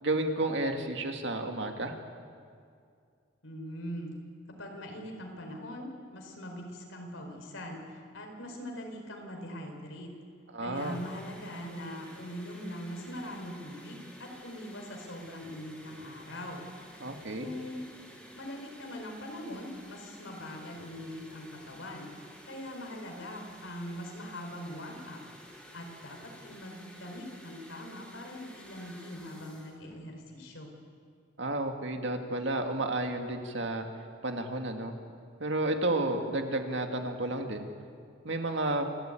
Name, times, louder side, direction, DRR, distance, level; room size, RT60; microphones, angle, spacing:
voice 1, 0.0-2.0 10.5-11.0 17.0-17.5 31.4-33.9 34.2-34.9 35.4-37.7 38.2-38.9, right 2 dB, 65° right, 4 dB, 2.2 m, -31 dB
voice 2, 3.4-4.2 4.5-10.1 10.6-16.6 16.9-17.0 17.4-17.8 18.3-22.1 22.5-25.2 25.7-30.7, equal, 85° left, 3 dB, 4.7 m, -42 dB
sound 1, 10.7-30.1, equal, 5° left, 3.9 m, -52 dB
28.0 x 13.5 x 9.1 m, 2.3 s
head